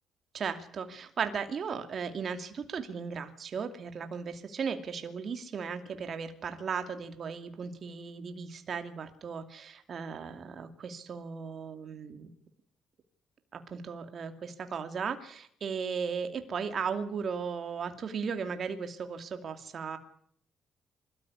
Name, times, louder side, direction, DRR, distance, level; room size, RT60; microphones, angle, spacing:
voice 1, 0.3-12.3 13.5-20.0, right 6 dB, 55° right, 7 dB, 2.5 m, -36 dB
26.0 x 14.0 x 9.8 m, 0.65 s
cardioid pair, 90°, 0 cm